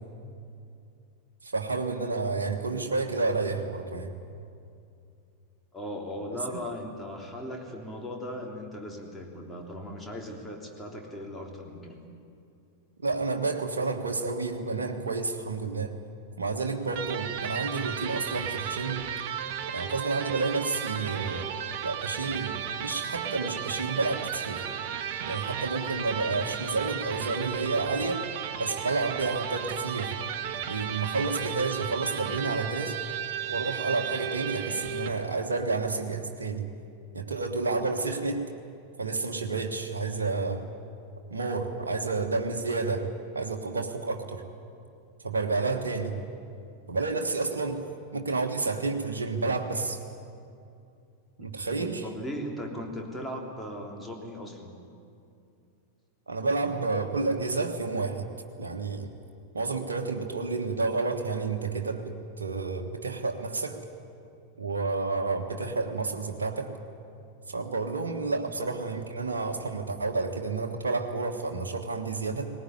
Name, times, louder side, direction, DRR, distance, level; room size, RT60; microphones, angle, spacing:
voice 1, 1.4-4.1 6.5-6.6 13.0-16.0 16.4-19.1 19.7-21.5 21.8-24.7 25.3-28.2 28.6-30.2 30.6-32.9 33.5-36.7 37.1-38.4 39.0-40.7 41.3-44.4 45.2-46.2 46.9-47.8 48.1-50.0 51.4-52.1 56.3-58.3 58.6-59.1 59.5-63.8 64.6-66.7 67.5-72.5, right 3 dB, 70° right, 3 dB, 1.4 m, -30 dB
voice 2, 5.7-12.0 51.7-54.7 68.3-68.4, equal, 10° left, 0 dB, 3.4 m, -38 dB
Electric guitar, 16.9-35.3, right 9 dB, 50° right, 1.1 m, -34 dB
19.0 x 18.5 x 9.9 m, 2.5 s
figure-of-eight pair, 90°, 0 cm